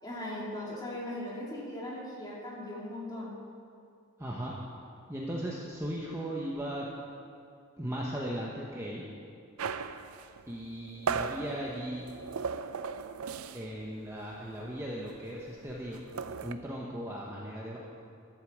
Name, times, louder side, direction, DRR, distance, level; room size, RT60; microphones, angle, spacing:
voice 1, 0.0-3.3, left 1 dB, 20° left, -5 dB, 2.5 m, -39 dB
voice 2, 4.2-4.6 5.1-6.9 7.8-9.0 10.5-12.1 13.5-16.0 16.4-17.8, equal, 10° right, -3 dB, 0.9 m, -37 dB
sound 1, 9.6-13.8 14.1-14.3 14.6-16.5, right 5 dB, 80° right, 0.5 m, -37 dB
12.0 x 8.1 x 7.4 m, 2.4 s
head